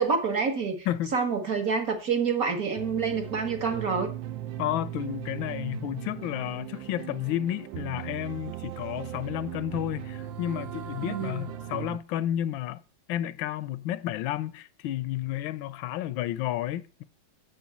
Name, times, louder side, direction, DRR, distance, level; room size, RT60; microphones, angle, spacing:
voice 1, 0.0-0.9 1.1-4.1 11.0-11.4, right 5 dB, 50° right, 1.7 m, -27 dB
sound 1, 2.8-12.0, right 11 dB, 80° right, 1.4 m, -38 dB
voice 2, 4.6-12.8 13.1-17.0, left 13 dB, 85° left, 1.4 m, -31 dB
7.1 x 5.1 x 7.1 m
omnidirectional pair, 2.1 m